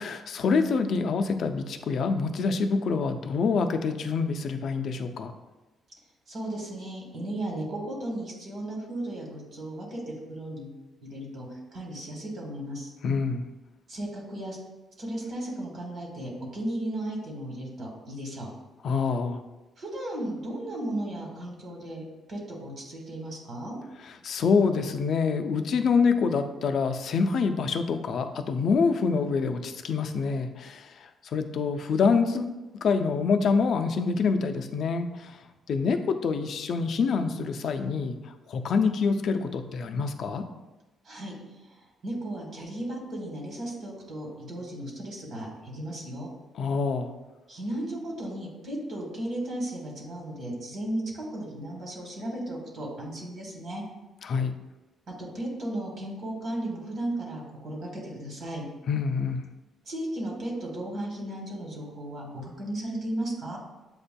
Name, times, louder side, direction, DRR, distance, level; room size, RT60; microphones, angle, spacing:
voice 1, 0.0-5.3 13.0-13.5 18.8-19.4 24.2-35.4 35.7-40.4 46.6-47.1 54.2-54.5 58.9-59.4, left 5 dB, 60° left, 7 dB, 0.4 m, -26 dB
voice 2, 6.3-12.9 13.9-14.6 15.0-18.5 19.8-23.7 41.0-41.8 42.0-46.3 47.5-53.8 55.1-58.7 59.8-63.6, right 1 dB, 55° right, -1 dB, 1.5 m, -35 dB
7.8 x 2.6 x 2.2 m, 1.1 s
cardioid pair, 90°, 0 cm